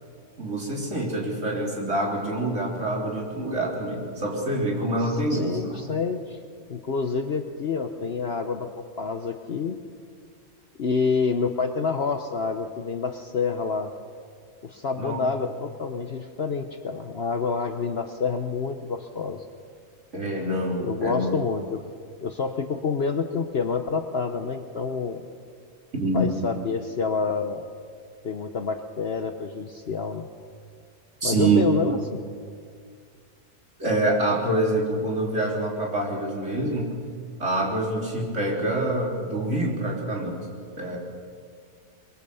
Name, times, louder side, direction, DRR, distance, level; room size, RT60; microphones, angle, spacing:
voice 1, 0.4-5.9 15.0-15.2 20.1-21.3 25.9-26.3 31.2-31.6 33.8-36.9 37.4-40.4 40.8-41.0, right 2 dB, 50° right, -2 dB, 3.9 m, -26 dB
voice 2, 5.4-6.4 6.7-9.8 10.8-13.9 14.6-19.5 20.8-21.8 22.2-25.2 26.1-27.7 28.2-30.3 31.2-32.3, left 5 dB, 50° left, 7 dB, 1.0 m, -28 dB
23.0 x 22.5 x 6.9 m, 2.1 s
omnidirectional pair, 1.6 m